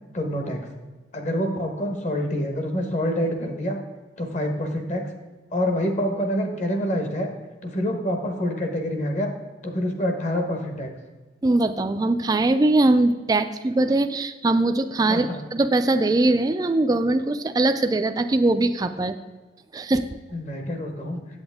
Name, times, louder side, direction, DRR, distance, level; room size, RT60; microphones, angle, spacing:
voice 1, 0.1-0.6 1.1-3.8 4.2-5.0 5.5-7.3 7.6-9.3 9.6-10.9 15.1-15.4 20.3-21.2, equal, 40° left, 4 dB, 1.2 m, -26 dB
voice 2, 11.4-19.1 19.7-20.1, right 2 dB, 20° right, 7 dB, 0.3 m, -21 dB
8.0 x 8.0 x 3.5 m, 1.3 s
head